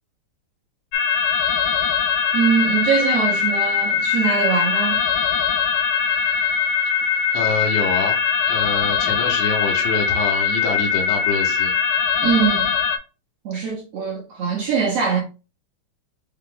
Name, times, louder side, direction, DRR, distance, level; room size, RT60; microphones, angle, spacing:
sound 1, 0.9-13.0, left 7 dB, 90° left, 2.3 m, -21 dB
voice 1, 2.3-5.0 12.2-12.8 13.4-15.2, right 6 dB, 65° right, 1.8 m, -22 dB
voice 2, 7.3-8.2 8.5-11.7, left 4 dB, 75° left, 2.4 m, -25 dB
5.6 x 2.4 x 3.7 m
omnidirectional pair, 3.8 m